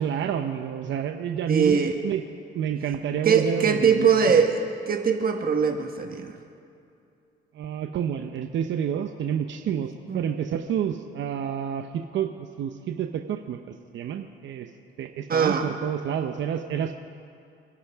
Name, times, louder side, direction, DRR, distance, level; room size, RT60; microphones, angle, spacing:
voice 1, 0.0-2.2 2.5-4.4 7.5-14.7 15.0-16.9, right 8 dB, 70° right, 6 dB, 0.8 m, -29 dB
voice 2, 1.5-1.9 3.2-6.4 10.1-10.2 15.3-15.7, right 6 dB, 50° right, 4 dB, 1.4 m, -22 dB
29.5 x 11.5 x 3.6 m, 2.6 s
cardioid pair, 90°, 20 cm